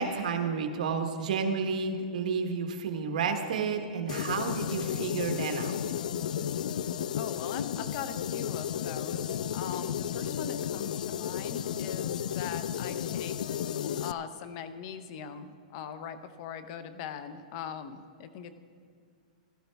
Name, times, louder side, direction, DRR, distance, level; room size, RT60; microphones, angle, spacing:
voice 1, 0.0-5.7, right 5 dB, 75° right, 5 dB, 1.4 m, -31 dB
sound 1, 4.1-14.1, left 9 dB, 80° left, 0.3 m, -33 dB
voice 2, 7.1-13.3 14.0-18.5, left 8 dB, 40° left, 11 dB, 0.7 m, -41 dB
16.0 x 12.5 x 3.4 m, 2.1 s
supercardioid pair, 160°, 4 cm